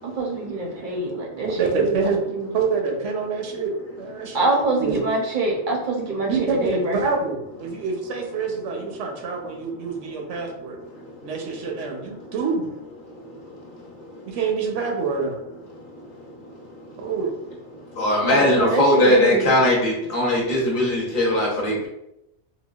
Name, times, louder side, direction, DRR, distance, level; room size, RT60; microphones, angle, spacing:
voice 1, 0.0-1.7 2.3-2.5 4.3-6.3 6.6-7.0 18.2-19.5, right 2 dB, 55° right, -1 dB, 0.6 m, -25 dB
voice 2, 1.4-2.2 2.5-5.0 6.3-10.8 11.2-12.7 14.3-15.4 17.0-17.4, right 5 dB, 90° right, 1 dB, 1.0 m, -26 dB
voice 3, 18.0-21.9, left 1 dB, 50° left, -3 dB, 0.8 m, -19 dB
3.7 x 2.2 x 2.3 m, 0.86 s
omnidirectional pair, 1.2 m